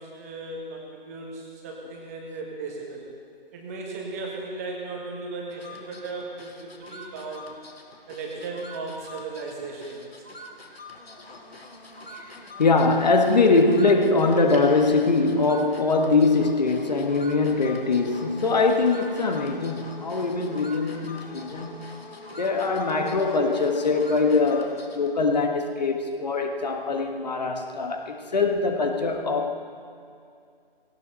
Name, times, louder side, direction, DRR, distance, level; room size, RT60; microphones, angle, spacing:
voice 1, 0.0-3.1 3.5-7.5 8.1-10.0 14.5-14.7, right 3 dB, 15° right, -1 dB, 1.5 m, -36 dB
sound 1, 5.5-25.2, left 1 dB, 90° left, 2.2 m, -44 dB
voice 2, 12.6-21.9 22.4-29.5, left 3 dB, 45° left, 4 dB, 1.4 m, -22 dB
18.0 x 17.0 x 4.2 m, 2.4 s
figure-of-eight pair, 160°, 30 cm